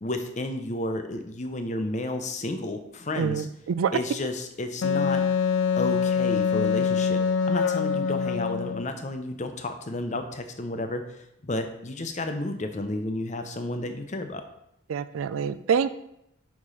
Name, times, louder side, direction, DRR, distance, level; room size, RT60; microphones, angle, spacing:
voice 1, 0.0-3.5 3.9-5.2 5.8-7.2 7.5-11.0 11.4-14.4, left 2 dB, 35° left, 7 dB, 0.7 m, -31 dB
voice 2, 3.2-3.9 14.9-15.9, right 6 dB, 80° right, 13 dB, 0.4 m, -26 dB
Wind instrument woodwind instrument, 4.8-8.9, left 6 dB, 65° left, 0.3 m, -24 dB
5.1 x 5.0 x 5.6 m, 0.79 s
head